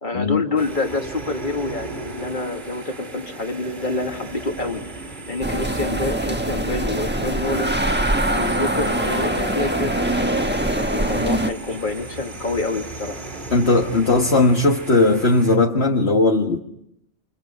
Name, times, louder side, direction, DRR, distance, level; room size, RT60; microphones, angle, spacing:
voice 1, 0.0-4.8 5.3-7.7 8.3-10.4 10.7-13.3, left 3 dB, 35° left, 4 dB, 2.4 m, -27 dB
sound 1, 0.6-15.6, right 2 dB, 35° right, 2.3 m, -36 dB
sound 2, 5.4-11.5, right 1 dB, 10° right, 1.2 m, -23 dB
voice 2, 13.5-16.6, left 3 dB, 55° left, 1 dB, 1.7 m, -17 dB
29.5 x 26.5 x 5.7 m, 0.74 s
omnidirectional pair, 1.4 m